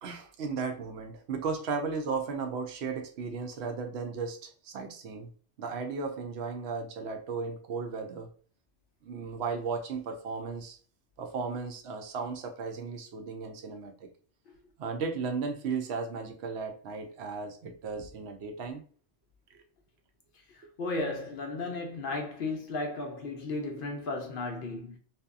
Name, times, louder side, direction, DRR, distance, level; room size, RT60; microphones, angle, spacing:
voice 1, 0.0-5.3 5.6-8.3 9.0-10.8 11.2-14.1 14.8-18.8, right 5 dB, 70° right, 0.8 m, -35 dB
voice 2, 20.5-25.0, left 2 dB, 60° left, 0.6 m, -35 dB
2.8 x 2.3 x 2.3 m
omnidirectional pair, 1.2 m